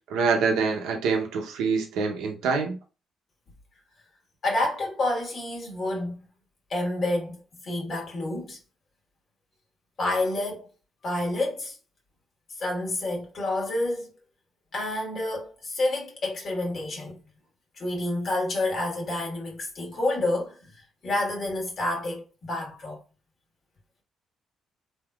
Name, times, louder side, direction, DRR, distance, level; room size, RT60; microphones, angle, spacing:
voice 1, 0.1-2.8, right 5 dB, 90° right, 0.8 m, -25 dB
voice 2, 4.4-6.2 6.7-8.6 10.0-10.7 11.0-11.8 12.6-14.1 14.7-17.2 17.7-23.0, left 2 dB, 50° left, 1.6 m, -29 dB
3.6 x 2.8 x 2.4 m
cardioid pair, 90°, 0 cm